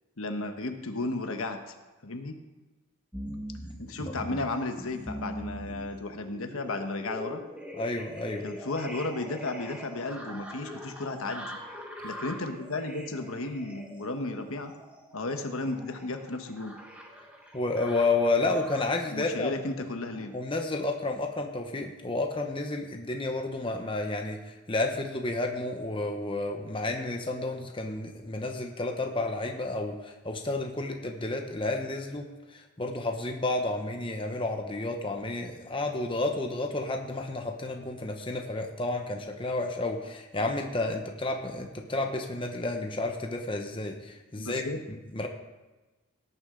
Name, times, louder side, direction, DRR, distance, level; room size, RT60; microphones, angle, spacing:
voice 1, 0.2-1.7 2.0-2.3 3.8-7.4 8.4-11.6 12.0-14.7 15.1-16.8 19.1-20.3 44.3-44.8, left 2 dB, 70° left, 6 dB, 1.2 m, -34 dB
sound 1, 3.1-19.0 19.7-20.3 20.8-20.9, equal, 5° right, 1.4 m, -42 dB
voice 2, 7.8-8.4 17.5-19.6 20.3-45.3, left 2 dB, 25° left, 3 dB, 0.9 m, -31 dB
17.5 x 9.7 x 3.8 m, 1.2 s
head